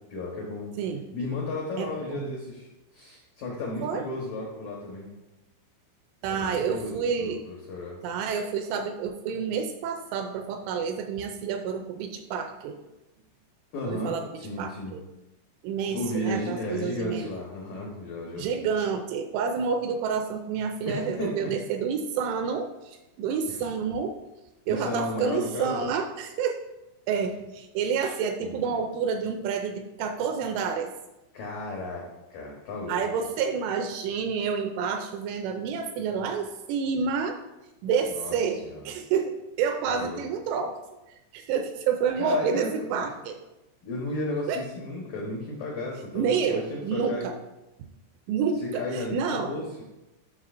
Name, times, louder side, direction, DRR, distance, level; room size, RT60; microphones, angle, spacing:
voice 1, 0.1-0.7 1.1-2.7 2.9-5.1 6.3-8.0 13.7-15.0 15.9-18.7 20.9-21.5 23.5-23.6 24.7-25.9 28.4-28.8 31.3-33.0 38.1-38.3 38.6-38.9 39.9-40.2 42.2-42.7 43.8-47.3 48.6-49.8, left 2 dB, 80° left, -3 dB, 1.9 m, -34 dB
voice 2, 1.8-2.3 3.8-4.0 6.2-7.4 8.0-12.8 13.8-14.2 14.6-15.0 15.6-17.3 18.4-24.2 24.7-26.6 27.1-30.9 32.9-37.4 37.8-40.8 41.1-43.4 44.5-44.6 46.1-47.3 48.3-49.5, right 6 dB, 85° right, 6 dB, 2.9 m, -29 dB
12.0 x 6.1 x 2.6 m, 0.99 s
omnidirectional pair, 5.8 m